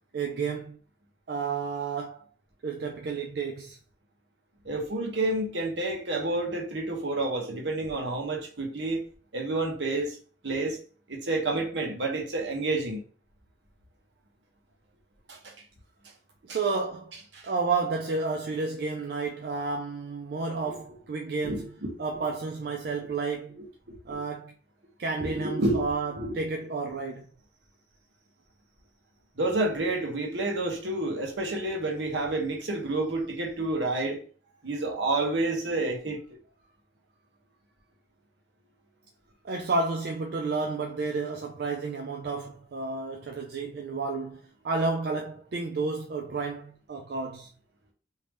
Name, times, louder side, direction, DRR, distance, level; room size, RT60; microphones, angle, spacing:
voice 1, 0.1-0.8 1.3-2.2 2.6-3.8 16.5-17.1 17.4-21.6 22.0-23.6 24.1-24.5 25.0-27.2 39.4-47.5, right 4 dB, 55° right, 0.4 m, -31 dB
voice 2, 4.6-9.0 9.3-10.2 10.4-10.8 11.1-13.0 15.3-15.5 16.5-16.6 17.3-17.5 20.7-20.8 21.4-21.9 23.9-24.0 25.2-25.8 26.1-26.4 29.4-34.2 34.6-36.4, right 2 dB, 75° right, 1.0 m, -29 dB
3.3 x 2.8 x 3.1 m
head